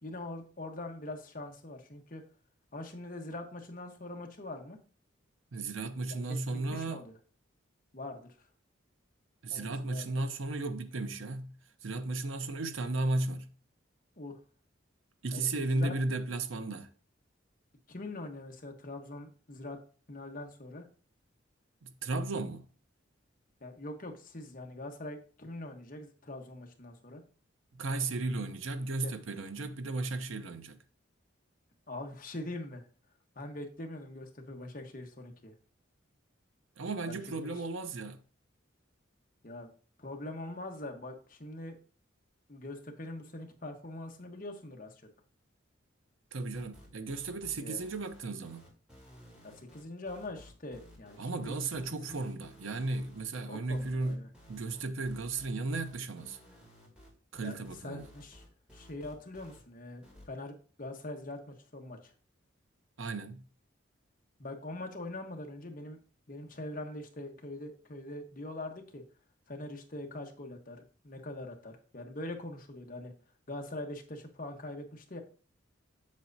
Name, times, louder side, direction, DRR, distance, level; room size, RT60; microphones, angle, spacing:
voice 1, 0.0-2.2 2.7-4.8 6.1-7.2 7.9-8.5 9.5-10.1 14.2-14.4 15.3-15.9 17.9-19.8 20.1-20.8 23.6-27.2 29.0-29.1 31.9-32.8 33.3-35.5 37.0-37.5 39.4-39.7 40.0-41.8 42.5-45.0 47.6-47.8 49.4-51.6 51.9-52.2 53.5-54.3 57.4-57.6 57.8-58.4 58.7-62.1 64.4-66.0 66.3-69.0 69.5-73.1 73.5-75.2, left 2 dB, 40° left, 1.1 m, -43 dB
voice 2, 5.5-7.0 9.4-11.6 11.8-13.5 15.2-16.9 21.8-22.6 27.7-30.8 36.8-38.2 46.3-48.7 51.2-54.2 54.5-56.4 57.3-58.1 63.0-63.4, right 2 dB, 85° right, 0.7 m, -35 dB
sound 1, 46.5-59.6 60.0-60.3, equal, 5° right, 2.5 m, -56 dB
7.4 x 7.4 x 2.7 m
head